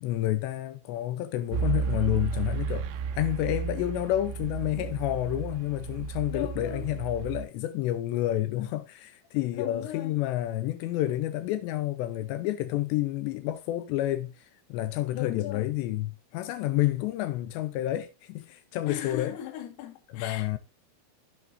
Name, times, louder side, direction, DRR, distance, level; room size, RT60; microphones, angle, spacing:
voice 1, 0.0-2.9 3.1-19.4 20.1-20.6, left 14 dB, 90° left, 2.5 m, -29 dB
sound 1, 1.5-7.5, right 7 dB, 90° right, 3.5 m, -33 dB
voice 2, 6.3-6.9 9.5-10.1 15.1-15.7 18.9-20.6, left 12 dB, 65° left, 3.2 m, -38 dB
17.0 x 5.9 x 2.6 m
omnidirectional pair, 5.8 m